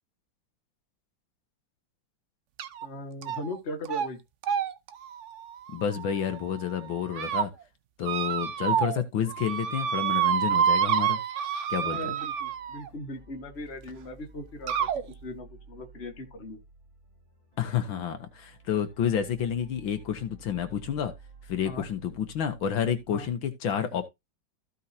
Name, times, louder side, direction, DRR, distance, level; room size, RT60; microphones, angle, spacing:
sound 1, 2.6-2.9 3.2-3.6 3.9-4.1 4.4-6.4 6.9-7.5 8.0-9.0 9.3-12.9 13.9-14.0 14.7-15.0, right 9 dB, 70° right, 0.7 m, -28 dB
voice 1, 2.8-4.2 11.8-16.6 21.7-21.9 23.1-23.3, left 1 dB, 35° left, 1.8 m, -39 dB
voice 2, 5.7-7.5 8.0-11.2 11.7-12.1 17.6-21.1 21.5-24.0, left 8 dB, 80° left, 2.0 m, -29 dB
sound 2, 11.7-23.4, right 3 dB, 25° right, 4.2 m, -53 dB
15.0 x 5.5 x 2.8 m
omnidirectional pair, 2.1 m